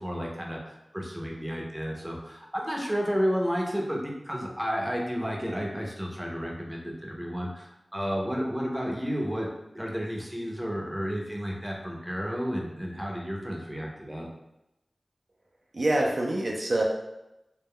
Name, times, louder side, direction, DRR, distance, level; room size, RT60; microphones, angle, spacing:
voice 1, 0.0-9.5 9.7-14.3, equal, 10° right, -1 dB, 0.6 m, -32 dB
voice 2, 15.7-16.8, right 1 dB, 60° right, -1 dB, 0.4 m, -25 dB
2.2 x 2.0 x 3.5 m, 0.91 s
wide cardioid pair, 50°, 0 cm